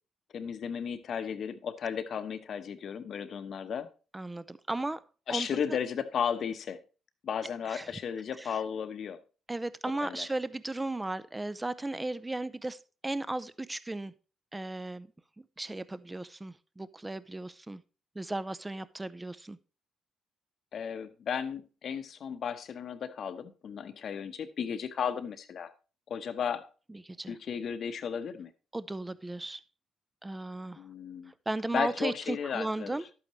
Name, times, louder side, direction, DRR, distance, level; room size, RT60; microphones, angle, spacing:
voice 1, 0.3-3.9 5.3-6.8 7.2-9.2 10.0-10.3 20.7-25.7 26.1-26.7 27.3-28.5 30.8-31.3 31.7-33.0, left 7 dB, 60° left, 1.0 m, -34 dB
voice 2, 4.1-5.0 5.3-5.5 7.7-7.9 8.4-8.5 9.5-14.1 14.5-15.1 15.4-17.8 18.2-19.6 27.1-27.4 28.7-29.6 30.2-30.8 31.3-33.0, right 2 dB, 15° right, 0.5 m, -36 dB
11.5 x 8.5 x 3.1 m
cardioid pair, 90°, 0 cm